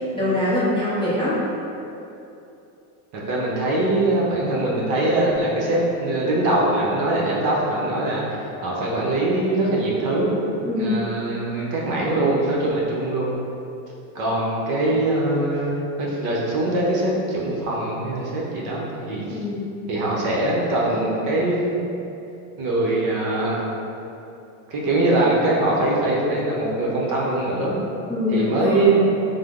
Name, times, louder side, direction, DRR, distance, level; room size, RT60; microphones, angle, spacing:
voice 1, 0.0-1.4 10.6-11.0 19.3-19.7 28.1-29.0, left 1 dB, 10° left, -11 dB, 0.5 m, -23 dB
voice 2, 3.3-8.2 8.6-10.3 10.8-13.3 14.1-15.7 16.0-19.4 19.9-21.6 22.6-23.6 24.7-27.8 28.3-29.0, right 2 dB, 45° right, -4 dB, 0.7 m, -22 dB
3.2 x 2.0 x 3.5 m, 2.8 s
supercardioid pair, 125°, 44 cm